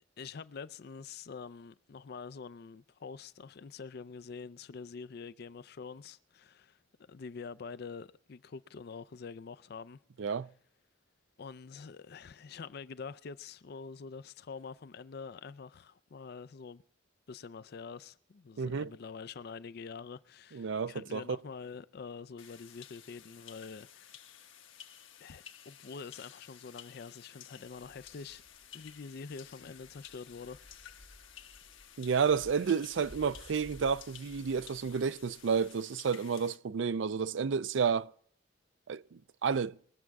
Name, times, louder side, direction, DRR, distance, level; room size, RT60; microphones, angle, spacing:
voice 1, 0.2-6.8 7.1-10.0 11.4-16.8 17.3-24.3 25.2-28.4 28.7-30.6, left 5 dB, 55° left, 0.4 m, -46 dB
voice 2, 18.6-18.9 20.5-21.4 32.0-38.1 38.9-39.8, right 6 dB, 75° right, 0.4 m, -31 dB
sound 1, 22.4-36.6, left 10 dB, 90° left, 1.2 m, -54 dB
sound 2, 27.7-35.7, equal, 5° left, 4.2 m, -58 dB
21.5 x 7.4 x 4.6 m
head